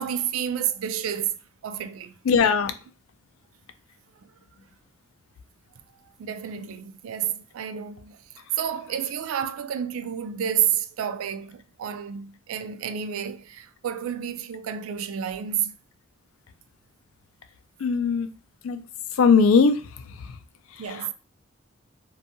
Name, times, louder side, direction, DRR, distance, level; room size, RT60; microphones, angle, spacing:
voice 1, 0.0-1.4 1.6-2.1 6.2-8.2 8.6-15.8 20.8-21.1, right 9 dB, 85° right, 0.3 m, -30 dB
voice 2, 2.3-2.7 17.8-18.3 18.6-18.8 19.2-19.8 20.9-21.1, left 5 dB, 90° left, 0.4 m, -19 dB
2.6 x 2.3 x 2.7 m
head